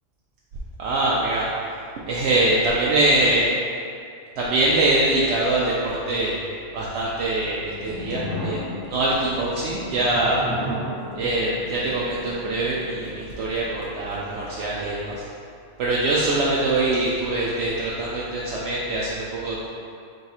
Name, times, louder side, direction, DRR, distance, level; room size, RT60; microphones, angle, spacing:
voice 1, 0.8-1.5 2.1-3.5 4.4-6.3 6.7-10.4 11.2-15.2 15.8-19.7, right 2 dB, 65° right, -6 dB, 0.8 m, -23 dB
sound 1, 7.6-14.5, left 1 dB, ahead, 0.9 m, -35 dB
3.4 x 3.1 x 4.2 m, 2.3 s
omnidirectional pair, 1.3 m